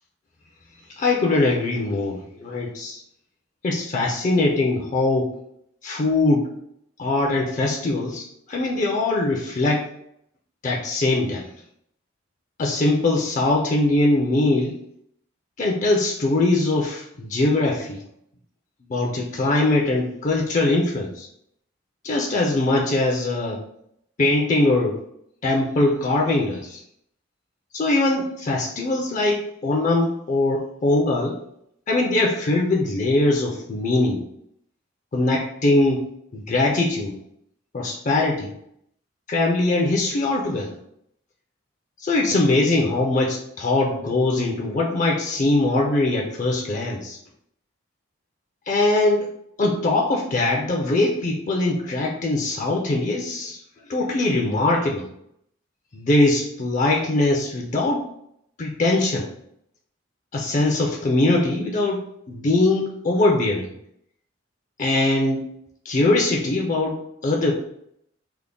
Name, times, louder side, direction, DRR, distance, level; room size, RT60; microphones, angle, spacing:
voice 1, 1.0-3.0 3.6-5.3 5.8-6.5 7.0-9.9 10.6-11.5 12.6-14.8 15.6-18.0 18.9-21.3 22.0-23.6 24.2-25.0 25.4-26.8 27.7-31.4 31.9-34.2 35.1-36.0 36.3-37.2 37.7-38.5 39.3-40.7 42.0-47.2 48.7-49.3 49.6-53.6 53.9-55.1 55.9-58.1 58.6-59.3 60.3-62.0 62.3-63.7 64.8-65.4 65.9-67.5, left 2 dB, 35° left, 0 dB, 0.4 m, -21 dB
3.4 x 2.1 x 3.7 m, 0.73 s
head